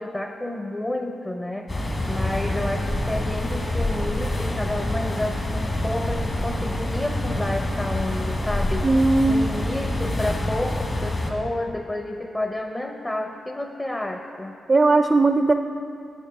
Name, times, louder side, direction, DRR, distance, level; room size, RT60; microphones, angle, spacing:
voice 1, 0.0-1.7 2.1-8.9 9.3-14.5, left 1 dB, 20° left, 4 dB, 0.7 m, -30 dB
sound 1, 1.7-11.3, left 1 dB, 40° left, 1.6 m, -26 dB
voice 2, 8.8-9.4 14.7-15.5, right 3 dB, 40° right, 8 dB, 0.3 m, -18 dB
7.2 x 7.1 x 5.9 m, 2.6 s
supercardioid pair, 50°, 0 cm